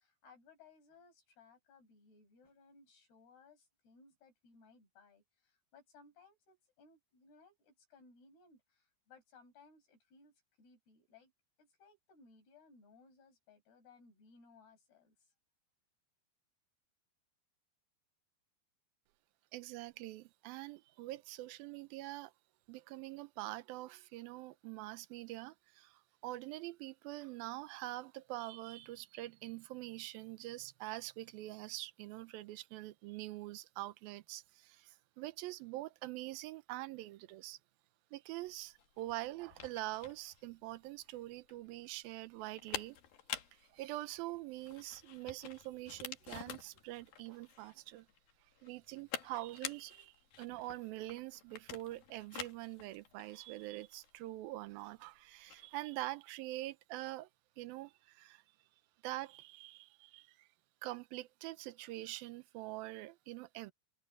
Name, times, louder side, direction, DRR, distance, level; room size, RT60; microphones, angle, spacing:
voice 1, 0.0-11.3 11.6-15.3, left 4 dB, 85° left, 8.7 m, -63 dB
voice 2, 19.5-22.3 22.7-37.6 38.1-43.0 43.5-48.1 48.6-57.3 57.6-58.4 59.0-60.5 60.8-63.7, right 17 dB, 80° right, 2.6 m, -45 dB
sound 1, 38.4-55.7, left 9 dB, 65° left, 3.5 m, -49 dB
omnidirectional pair, 4.5 m